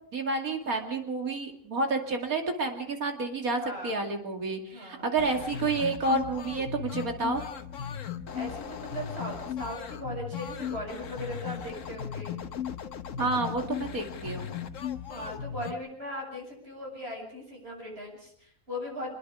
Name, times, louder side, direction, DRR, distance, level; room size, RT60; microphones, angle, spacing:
voice 1, 0.1-7.4 13.2-14.5, right 3 dB, 85° right, 3 dB, 2.9 m, -30 dB
voice 2, 3.6-4.0 4.7-5.1 8.3-12.4 15.1-19.1, equal, 45° right, 0 dB, 8.3 m, -38 dB
sound 1, 5.2-15.7, left 8 dB, 65° left, 1.3 m, -37 dB
25.5 x 21.5 x 4.9 m, 0.68 s
omnidirectional pair, 1.5 m